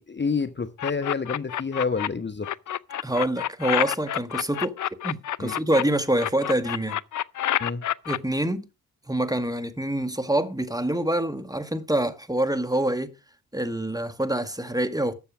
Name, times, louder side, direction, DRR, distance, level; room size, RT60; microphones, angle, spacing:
voice 1, 0.0-2.5 5.4-5.6 7.6-7.8, left 5 dB, 25° left, 1.1 m, -28 dB
sound 1, 0.8-2.1 2.4-5.8 6.2-8.2, left 11 dB, 45° left, 0.6 m, -28 dB
voice 2, 3.0-4.8 5.0-7.0 8.1-8.6 9.1-13.1 13.5-15.1, right 1 dB, 10° right, 1.8 m, -26 dB
12.5 x 7.2 x 4.9 m
hypercardioid pair, 45°, 43 cm